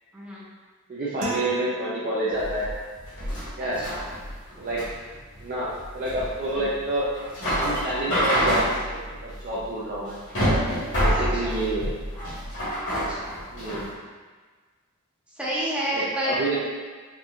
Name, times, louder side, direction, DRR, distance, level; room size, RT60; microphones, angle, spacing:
voice 1, 0.1-0.4 3.6-4.0 6.5-6.7 9.0-9.1 11.1-11.6 12.9-13.3 15.4-16.6, equal, 5° right, -7 dB, 0.7 m, -30 dB
voice 2, 0.9-2.7 3.6-3.8 4.6-4.8 5.4-7.1 7.5-10.2 10.9-11.9 13.5-13.9 15.9-16.6, right 1 dB, 40° right, -7 dB, 0.5 m, -28 dB
sound 1, 1.2-2.7, right 1 dB, 90° right, 0.6 m, -35 dB
sound 2, 2.3-13.9, equal, 55° left, 1.4 m, -27 dB
4.4 x 2.5 x 2.4 m, 1.4 s
head